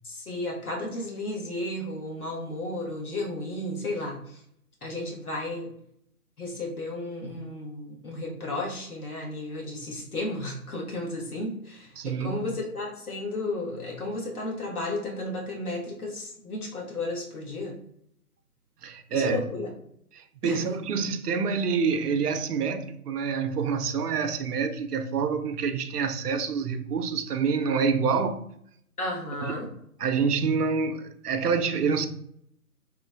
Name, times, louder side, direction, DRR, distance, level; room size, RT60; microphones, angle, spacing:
voice 1, 0.0-4.4 4.8-5.7 6.4-17.8 19.1-19.7 20.4-20.6 29.0-29.7, left 2 dB, 70° left, 1.2 m, -33 dB
voice 2, 12.0-12.4 18.8-19.4 20.2-28.4 29.4-29.5 30.0-32.1, right 5 dB, 90° right, 0.5 m, -27 dB
3.1 x 2.1 x 2.4 m
figure-of-eight pair, 170°, 45 cm